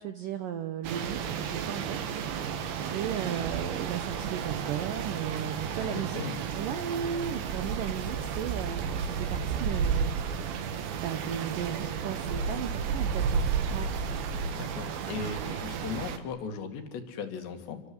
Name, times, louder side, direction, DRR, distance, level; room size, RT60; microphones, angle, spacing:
voice 1, 0.0-2.2 2.5-6.3 6.5-10.1 10.9-13.9, right 9 dB, 80° right, 10 dB, 1.9 m, -36 dB
sound 1, 0.8-16.2, right 6 dB, 60° right, 3.1 m, -32 dB
voice 2, 5.8-6.4 14.5-17.8, left 5 dB, 70° left, 7 dB, 4.4 m, -37 dB
28.0 x 23.0 x 7.9 m, 1.1 s
omnidirectional pair, 5.3 m